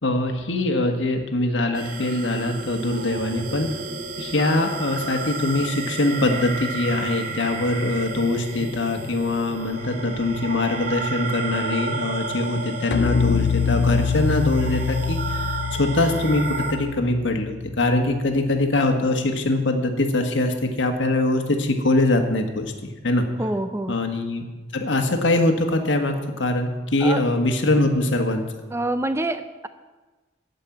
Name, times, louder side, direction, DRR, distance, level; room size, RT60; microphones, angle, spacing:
voice 1, 0.0-3.7 4.2-23.3 23.9-24.4 24.7-28.5, left 2 dB, 85° left, 4 dB, 1.5 m, -23 dB
sound 1, 1.7-16.7, right 3 dB, 55° right, 2.0 m, -32 dB
sound 2, 12.9-18.1, left 6 dB, 60° left, 0.4 m, -25 dB
voice 2, 23.4-24.0 27.0-27.2 28.7-29.7, right 1 dB, 15° right, 11 dB, 0.4 m, -26 dB
14.0 x 5.3 x 8.6 m, 1.2 s
head